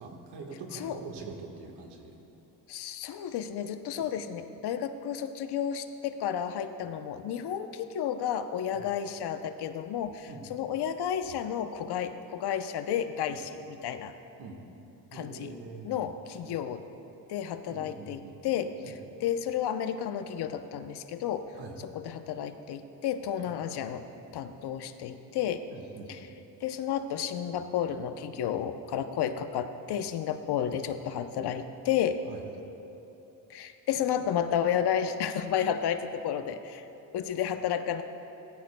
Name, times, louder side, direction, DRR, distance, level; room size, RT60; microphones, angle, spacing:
voice 1, 0.0-2.1 3.9-4.0 8.7-8.9 10.3-10.5 13.3-13.4 14.4-14.6 15.1-16.0 16.4-16.6 17.7-18.3 18.8-18.9 21.5-21.7 23.4-23.5 25.7-26.3 32.3-32.4, right 3 dB, 90° right, 2 dB, 1.5 m, -44 dB
voice 2, 2.7-14.1 15.1-15.5 15.8-16.8 17.3-18.8 19.2-21.5 21.9-24.1 24.3-25.6 26.1-26.2 26.6-32.2 33.5-36.8 37.1-38.0, left 9 dB, 75° left, 9 dB, 0.7 m, -32 dB
16.5 x 14.0 x 2.2 m, 3.0 s
cardioid pair, 90°, 40 cm